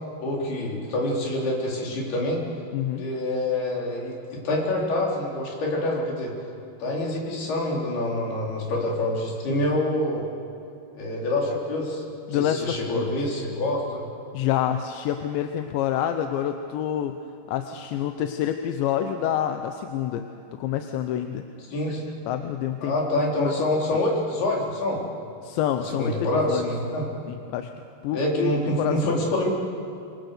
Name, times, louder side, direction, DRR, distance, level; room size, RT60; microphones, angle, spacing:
voice 1, 0.2-2.4 3.0-6.3 6.8-10.2 11.0-12.0 12.3-14.0 21.7-22.0 22.8-25.0 26.0-27.1 28.1-29.5, left 1 dB, 65° left, -2 dB, 6.0 m, -26 dB
voice 2, 2.7-3.0 12.3-13.1 14.3-17.2 17.5-20.3 20.5-21.4 22.3-24.0 25.4-26.6 27.3-27.7 28.0-28.5 28.8-29.2, left 10 dB, 85° left, 7 dB, 3.2 m, -27 dB
26.0 x 25.5 x 6.8 m, 2.6 s
omnidirectional pair, 5.0 m